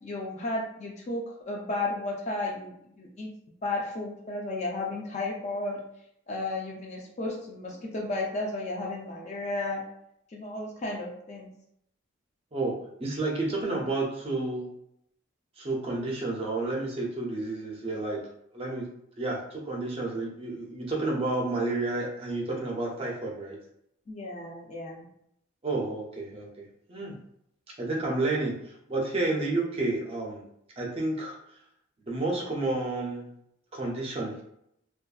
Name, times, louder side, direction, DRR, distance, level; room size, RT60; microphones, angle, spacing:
voice 1, 0.0-3.3 3.6-5.8 6.3-9.8 10.3-11.5 24.1-25.1, left 2 dB, 35° left, 0 dB, 0.4 m, -33 dB
voice 2, 12.5-14.7 15.6-18.2 18.5-18.9 19.2-23.6 25.6-27.1 27.7-30.4 30.8-31.4 32.1-33.3 33.7-34.4, right 2 dB, 30° right, -2 dB, 0.4 m, -30 dB
2.5 x 2.3 x 2.3 m, 0.75 s
head